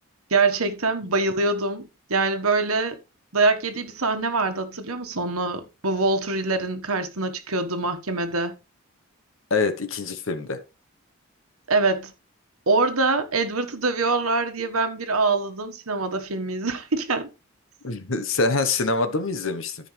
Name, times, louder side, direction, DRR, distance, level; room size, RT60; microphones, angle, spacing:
voice 1, 0.3-3.0 3.3-8.5 11.7-12.1 12.7-17.3, right 3 dB, 80° right, 1.5 m, -24 dB
voice 2, 9.5-10.6 17.8-19.9, left 3 dB, 65° left, 1.1 m, -25 dB
13.5 x 5.3 x 3.3 m
head